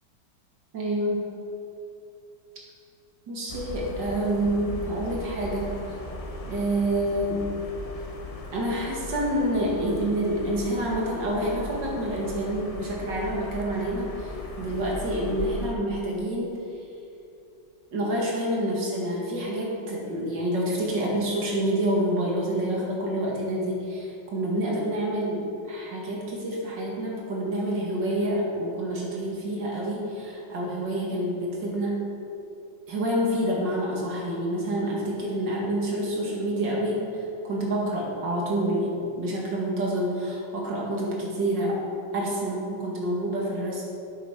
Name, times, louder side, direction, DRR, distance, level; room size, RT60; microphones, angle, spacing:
voice 1, 0.7-1.2 3.3-5.7 6.5-7.4 8.5-14.3 14.6-16.5 17.9-32.1 32.9-41.9 42.1-43.8, right 1 dB, 80° right, -3 dB, 2.7 m, -28 dB
sound 1, 3.5-15.7, left 2 dB, 50° left, 0.4 m, -38 dB
8.6 x 8.2 x 5.9 m, 2.7 s
omnidirectional pair, 1.9 m